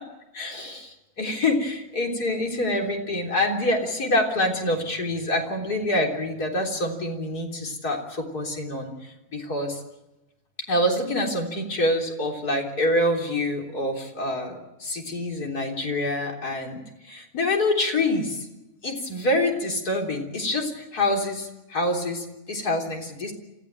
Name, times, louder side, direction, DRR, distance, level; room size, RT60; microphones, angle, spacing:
voice 1, 0.3-9.8 10.7-18.5 18.8-23.3, left 1 dB, 90° left, 1 dB, 4.2 m, -26 dB
28.0 x 15.5 x 9.0 m, 0.98 s
omnidirectional pair, 1.6 m